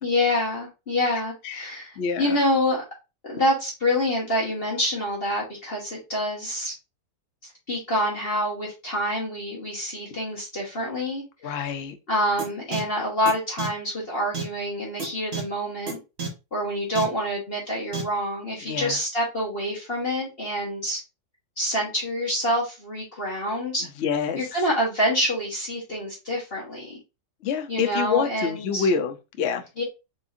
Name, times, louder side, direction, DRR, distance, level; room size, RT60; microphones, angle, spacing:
voice 1, 0.0-2.8 3.2-6.7 7.7-11.6 12.1-16.0 16.5-21.0 21.6-23.9 24.3-27.0 27.7-28.9 29.8-29.9, left 1 dB, 35° left, 1.3 m, -27 dB
voice 2, 2.0-2.4 11.4-11.9 18.7-19.0 24.0-24.4 27.4-29.6, left 6 dB, 80° left, 0.6 m, -26 dB
sound 1, 12.4-12.5 12.7-12.8 13.3-13.4 13.6-13.7 14.3-14.4 15.0-15.1 15.3-15.4 15.9-16.0 16.2-16.3 17.0-17.1 17.9-18.0, right 5 dB, 40° right, 1.2 m, -29 dB
4.3 x 3.6 x 2.6 m
omnidirectional pair, 1.9 m